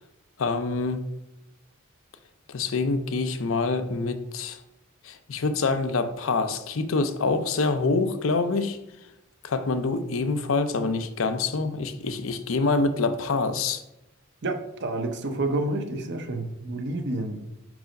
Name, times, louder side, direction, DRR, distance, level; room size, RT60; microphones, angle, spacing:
voice 1, 0.4-1.0 2.5-4.6 5.0-8.8 9.4-13.8, left 3 dB, 70° left, 10 dB, 0.6 m, -26 dB
voice 2, 14.4-17.4, right 2 dB, 55° right, 5 dB, 0.8 m, -29 dB
5.0 x 4.7 x 5.2 m, 0.91 s
head